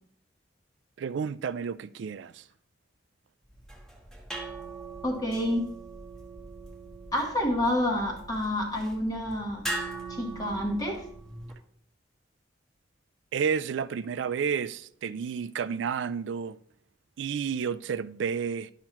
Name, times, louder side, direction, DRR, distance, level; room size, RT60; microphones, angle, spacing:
voice 1, 1.0-2.5 13.3-16.6 17.2-18.7, right 6 dB, 75° right, 0.3 m, -31 dB
sound 1, 3.5-11.5, right 2 dB, ahead, 1.3 m, -40 dB
voice 2, 5.0-5.6 7.1-9.6 10.1-11.1, left 1 dB, 20° left, 1.1 m, -28 dB
11.0 x 5.8 x 2.9 m
head